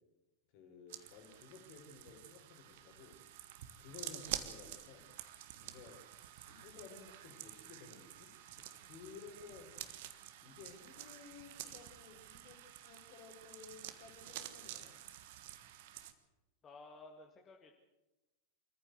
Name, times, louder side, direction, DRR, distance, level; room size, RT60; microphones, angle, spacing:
voice 1, 0.5-3.2 3.8-5.1 5.6-6.0 6.5-9.7 10.4-15.0, left 5 dB, 45° left, 5 dB, 4.4 m, -55 dB
sound 1, 0.9-16.1, right 12 dB, 50° right, 1.5 m, -49 dB
voice 2, 16.6-17.7, left 3 dB, 25° left, 3 dB, 1.9 m, -55 dB
25.0 x 14.5 x 8.0 m, 1.0 s
figure-of-eight pair, 90°, 0 cm